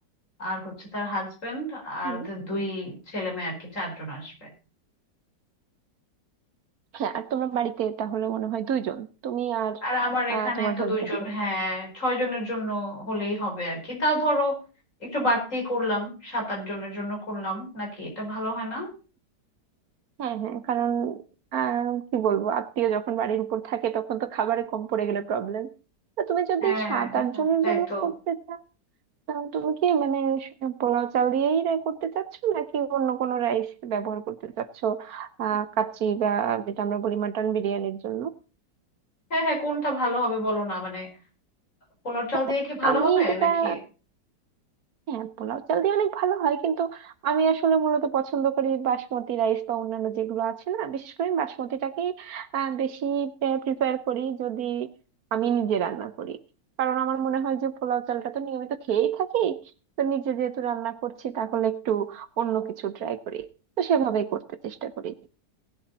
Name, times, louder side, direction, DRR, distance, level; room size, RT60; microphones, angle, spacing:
voice 1, 0.4-4.5 9.8-14.6 15.0-18.9 26.6-28.1 39.3-41.1 42.0-43.8, equal, 45° left, -1 dB, 5.4 m, -29 dB
voice 2, 6.9-9.8 10.3-10.9 20.2-21.2 21.5-25.7 26.2-28.6 29.3-38.3 42.3-42.4 42.8-43.8 45.1-54.9 55.3-56.4 56.8-59.6 60.0-63.5 63.8-65.1, right 8 dB, 65° right, 13 dB, 1.2 m, -27 dB
18.0 x 7.8 x 4.1 m, 0.34 s
omnidirectional pair, 1.9 m